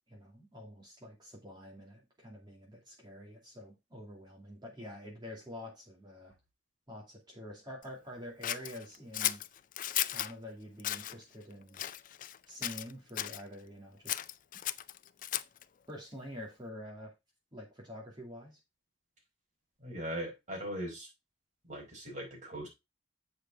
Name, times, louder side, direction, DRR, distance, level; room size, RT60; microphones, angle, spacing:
voice 1, 0.1-6.3 6.9-9.4 10.0-11.8 12.5-14.2 15.9-17.1 17.5-18.6, equal, 25° right, -2 dB, 2.5 m, -47 dB
Scissors, 8.4-10.3 10.8-11.1 11.7-12.4 12.6-13.4 14.1-15.6, left 13 dB, 45° left, 0.4 m, -35 dB
voice 2, 19.8-21.1 21.6-22.7, right 1 dB, 40° right, -1 dB, 4.6 m, -39 dB
8.0 x 5.1 x 4.7 m, 0.22 s
head